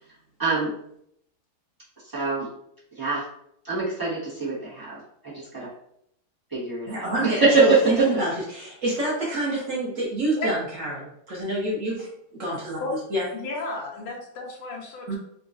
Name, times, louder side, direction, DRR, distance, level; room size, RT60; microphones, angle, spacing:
voice 1, 0.4-0.7 2.1-2.5 3.0-3.2 3.6-5.0 5.5-5.7 6.5-7.8, right 3 dB, 20° right, -10 dB, 0.5 m, -23 dB
voice 2, 6.9-12.1 12.4-12.8 13.1-13.2 15.1-15.2, right 1 dB, 90° right, -5 dB, 0.7 m, -27 dB
voice 3, 13.3-15.2, left 2 dB, 80° left, 0 dB, 1.6 m, -32 dB
4.0 x 2.3 x 2.5 m, 0.73 s
omnidirectional pair, 2.3 m